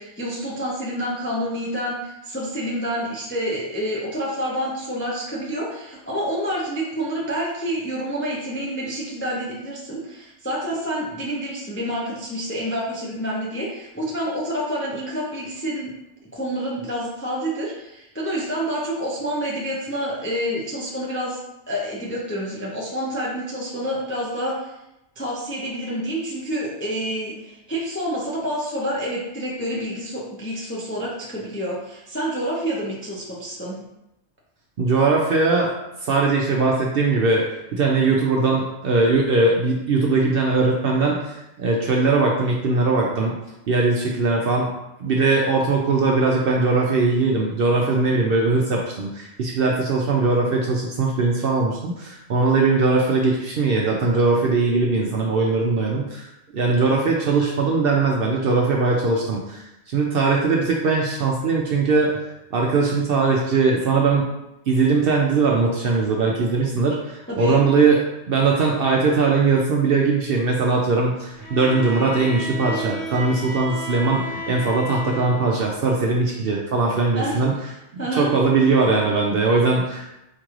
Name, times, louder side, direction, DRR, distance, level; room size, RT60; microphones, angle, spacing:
voice 1, 0.0-15.9 16.3-21.4 21.7-24.7 25.2-33.8 67.3-67.6 77.2-77.4 78.0-78.3, equal, 20° left, -5 dB, 0.3 m, -28 dB
voice 2, 34.8-35.7 36.0-37.4 37.7-43.3 43.7-44.7 45.0-56.3 56.5-62.2 62.5-64.2 64.7-77.5 78.1-80.0, right 3 dB, 65° right, -1 dB, 0.6 m, -20 dB
Bowed string instrument, 71.4-75.7, equal, 75° left, 1.9 m, -33 dB
4.5 x 3.0 x 2.4 m, 0.90 s
omnidirectional pair, 1.3 m